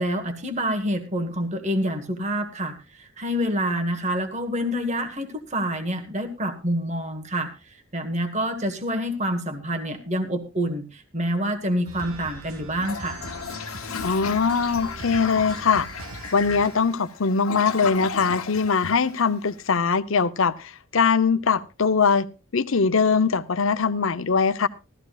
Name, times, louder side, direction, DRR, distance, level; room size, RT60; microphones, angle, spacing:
voice 1, 0.0-13.2, equal, 35° right, 1.4 m, -27 dB
sound 1, 11.9-16.9, right 2 dB, 85° right, 1.3 m, -40 dB
Toilet flush, 12.7-19.7, left 6 dB, 85° left, 1.0 m, -35 dB
voice 2, 14.0-15.9 16.3-22.3 22.5-24.7, left 5 dB, 70° left, 0.8 m, -22 dB
17.5 x 13.5 x 2.4 m
head